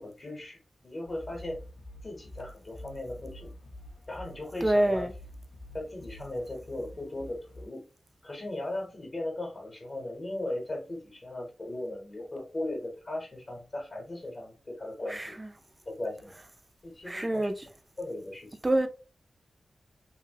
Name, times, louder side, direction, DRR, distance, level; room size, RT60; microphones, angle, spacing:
voice 1, 0.0-1.6 2.0-3.5 4.1-5.1 5.7-7.8 8.2-15.4 15.9-16.3 16.8-17.5 18.0-18.6, left 1 dB, 40° left, 0.8 m, -37 dB
sound 1, 1.1-7.7, left 1 dB, 75° left, 0.4 m, -47 dB
voice 2, 4.6-5.1 15.1-15.5 17.1-17.7 18.6-18.9, right 1 dB, 20° right, 0.4 m, -26 dB
2.9 x 2.6 x 2.7 m
wide cardioid pair, 105°, 0 cm